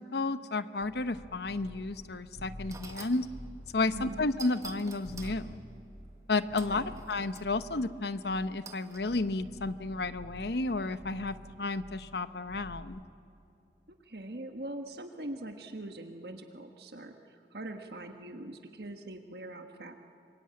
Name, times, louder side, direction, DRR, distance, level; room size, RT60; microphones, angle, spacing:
voice 1, 0.0-3.3 3.7-5.6 6.3-13.0, left 3 dB, 65° left, 12 dB, 0.8 m, -32 dB
sound 1, 0.8-2.0 2.4-4.7 5.0-12.8, equal, 35° right, 5.3 m, -49 dB
sound 2, 2.1-2.2 2.7-3.2 4.4-5.4 6.6-7.5 8.6-9.1, right 5 dB, 20° right, 1.5 m, -48 dB
voice 2, 3.9-4.3 6.6-7.0 13.9-20.0, right 1 dB, 60° right, 5 dB, 1.4 m, -43 dB
26.5 x 22.5 x 8.8 m, 2.7 s
head